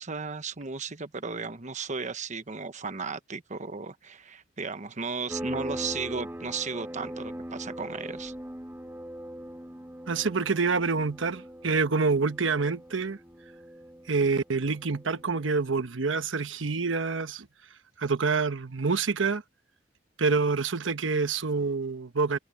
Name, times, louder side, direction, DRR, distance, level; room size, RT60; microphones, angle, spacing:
voice 1, 0.0-8.3, right 4 dB, 40° right, 1.1 m, -35 dB
sound 1, 5.3-15.6, right 1 dB, 10° right, 1.5 m, -41 dB
voice 2, 10.1-13.2 14.1-17.5 18.0-19.4 20.2-22.4, right 4 dB, 85° right, 1.1 m, -27 dB
head